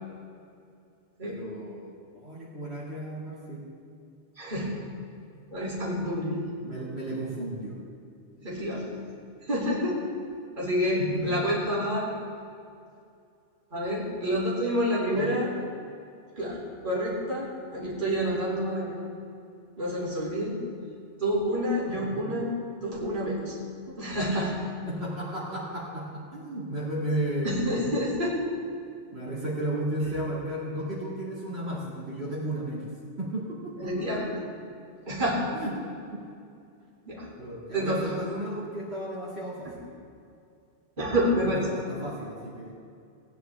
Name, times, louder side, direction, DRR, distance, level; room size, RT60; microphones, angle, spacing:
voice 1, 1.2-3.6 6.6-7.8 11.0-11.4 15.1-15.4 22.1-22.2 24.9-27.8 29.1-32.9 33.2-34.1 35.5-36.2 37.4-39.9 41.4-42.7, right 1 dB, 60° right, -8 dB, 2.5 m, -34 dB
voice 2, 4.4-4.7 5.5-6.5 8.4-9.0 9.4-10.0 10.6-12.1 13.7-15.5 16.4-19.0 19.8-20.6 21.2-22.5 22.8-23.6 23.9-24.5 27.4-28.4 33.8-34.3 35.1-35.5 37.0-37.3 37.7-38.1 39.6-39.7 41.0-41.7, equal, 45° right, -7 dB, 2.8 m, -28 dB
17.5 x 9.6 x 3.4 m, 2.4 s
omnidirectional pair, 1.2 m